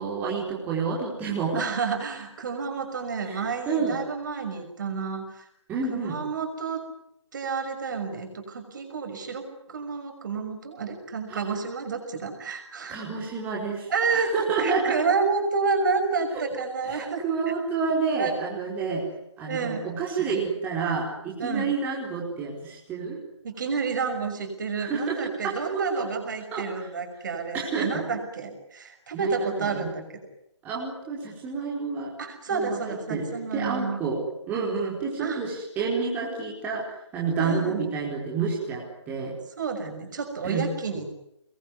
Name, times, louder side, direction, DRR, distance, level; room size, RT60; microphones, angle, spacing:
voice 1, 0.0-1.7 3.2-4.0 5.7-6.2 11.3-11.5 12.9-15.0 16.3-16.4 16.8-19.1 19.4-23.2 24.8-25.2 25.4-26.1 26.5-26.6 27.5-28.0 29.1-29.9 30.6-32.1 32.5-34.2 34.5-36.8 37.1-39.4 40.4-40.7, right 5 dB, 10° right, -4 dB, 4.5 m, -29 dB
voice 2, 1.5-5.5 5.9-6.8 7.3-13.0 13.9-17.3 18.2-18.4 19.5-19.8 21.4-21.7 23.4-30.0 32.2-34.0 35.2-35.4 37.2-37.8 39.6-41.1, right 4 dB, 40° right, 5 dB, 6.2 m, -29 dB
25.5 x 22.0 x 9.7 m, 0.79 s
figure-of-eight pair, 155°, 16 cm